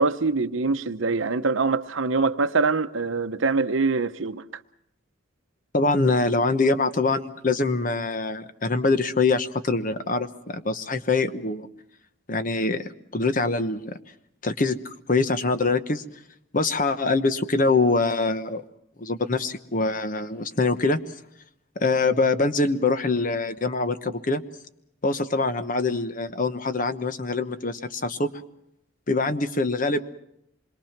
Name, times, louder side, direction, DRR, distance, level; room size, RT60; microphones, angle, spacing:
voice 1, 0.0-4.4, right 4 dB, 75° right, 0.8 m, -24 dB
voice 2, 5.7-11.7 12.3-13.9 14.4-14.8 15.1-16.0 16.5-18.6 19.0-21.0 21.8-24.4 25.0-28.3 29.1-30.0, left 3 dB, 40° left, 1.0 m, -24 dB
27.0 x 22.0 x 5.9 m
head